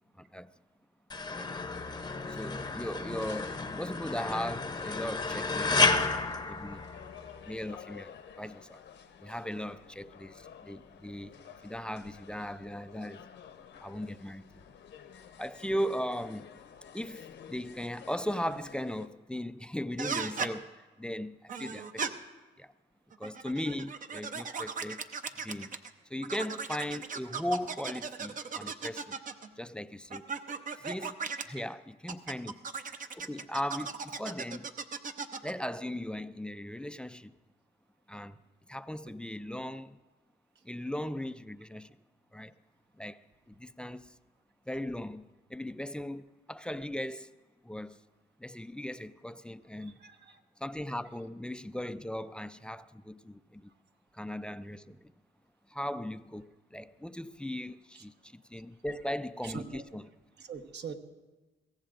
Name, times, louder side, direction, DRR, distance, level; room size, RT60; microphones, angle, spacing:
voice 1, 0.2-0.5 1.4-1.5 2.3-6.1 6.5-6.9 7.4-8.8 9.2-11.4 11.6-13.3 13.8-14.7 15.4-16.5 16.9-22.2 22.6-22.7 23.2-25.0 25.4-25.7 26.1-29.1 29.6-30.3 30.8-31.2 31.5-32.5 33.1-34.7 35.4-37.4 38.1-38.4 38.7-40.0 40.6-42.0 42.3-42.5 43.0-43.2 43.5-44.1 44.7-47.3 47.6-48.0 48.4-50.0 50.6-53.7 54.1-55.1 55.7-60.0, equal, 5° left, 0.3 m, -38 dB
sound 1, 1.1-7.4, left 3 dB, 20° left, 0.8 m, -31 dB
sound 2, 1.7-19.1, left 8 dB, 65° left, 0.9 m, -51 dB
sound 3, 20.0-20.5 21.5-22.1 23.1-25.9 26.2-29.5 30.1-31.4 32.1-35.5, right 5 dB, 40° right, 0.7 m, -37 dB
voice 2, 49.8-50.4 51.2-51.3 57.9-58.1 58.5-58.6 59.4-59.8 60.4-60.9, right 6 dB, 60° right, 1.1 m, -44 dB
22.5 x 16.5 x 2.5 m
cardioid pair, 90°, 20 cm